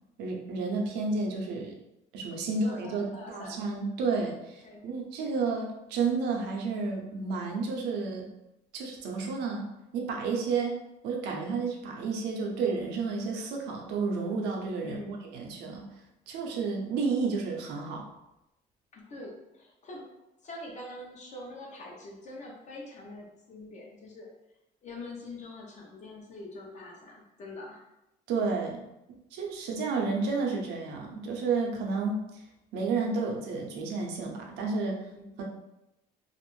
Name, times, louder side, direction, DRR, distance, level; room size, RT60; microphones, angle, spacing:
voice 1, 0.2-1.7 2.1-8.3 8.7-10.8 11.0-15.9 16.3-18.0 28.3-28.8 29.3-32.3 32.7-35.0 35.4-35.5, right 4 dB, 85° right, 0 dB, 0.6 m, -31 dB
voice 2, 2.5-3.6 4.6-4.9 14.8-15.1 18.9-20.0 20.4-24.3 24.8-27.9 35.1-35.3, left 2 dB, 45° left, -2 dB, 0.8 m, -44 dB
2.5 x 2.0 x 3.0 m, 0.90 s
cardioid pair, 110°, 17 cm